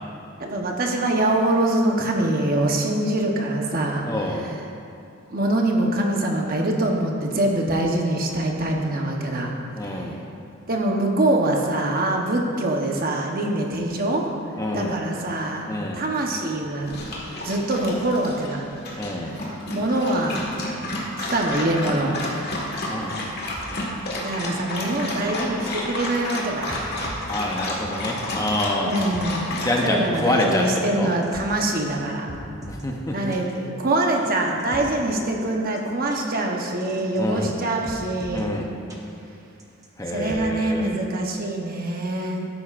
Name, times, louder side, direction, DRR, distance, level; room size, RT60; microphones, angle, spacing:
voice 1, 0.4-4.0 4.3-4.6 5.3-9.5 9.8-10.1 10.7-14.3 14.7-15.7 15.9-17.0 17.4-18.6 19.2-19.3 19.6-20.5 21.2-22.2 24.2-26.8 28.8-32.3 33.1-38.5 40.1-42.4, right 1 dB, 40° right, 1 dB, 1.0 m, -24 dB
voice 2, 4.0-4.4 9.8-10.2 14.6-15.0 15.7-16.0 19.0-19.4 22.9-23.2 27.3-28.9 29.6-31.1 32.7-33.4 37.2-37.5 38.3-38.7 40.0-40.9, left 1 dB, 15° left, 0 dB, 0.7 m, -26 dB
Dog, 16.8-29.7, left 1 dB, 50° left, 1.6 m, -31 dB
sound 1, 23.5-23.7 24.2-24.3 24.6-24.7 24.9-25.0 25.6-26.0 26.3-26.4 26.7-27.3 27.7-27.8 28.4-29.2 29.8-29.9 30.2-30.3 30.5-30.6 31.2-32.0 32.3-32.8 33.3-33.4 34.0-34.8 35.4-35.5 35.8-35.9 36.1-36.2 36.8-37.2 37.5-37.6 37.8-38.4 38.9-39.0 39.6-40.4, right 1 dB, 15° right, 1.0 m, -41 dB
13.0 x 10.5 x 2.5 m, 2.5 s
head